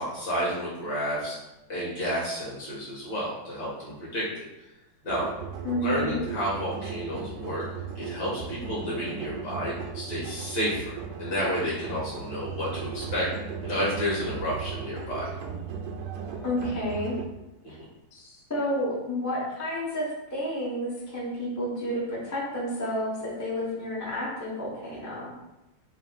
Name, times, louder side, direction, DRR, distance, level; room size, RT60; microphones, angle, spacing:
voice 1, 0.0-1.4 1.7-4.5 5.0-5.3 5.8-7.6 8.0-13.3 13.6-15.3 17.6-17.7, equal, 55° left, -6 dB, 1.9 m, -31 dB
sound 1, 5.1-17.3, right 6 dB, 75° right, 1.1 m, -37 dB
voice 2, 5.6-6.2 16.4-17.2 18.1-25.3, equal, 20° left, -7 dB, 0.5 m, -30 dB
4.0 x 2.2 x 4.0 m, 0.94 s
omnidirectional pair, 2.3 m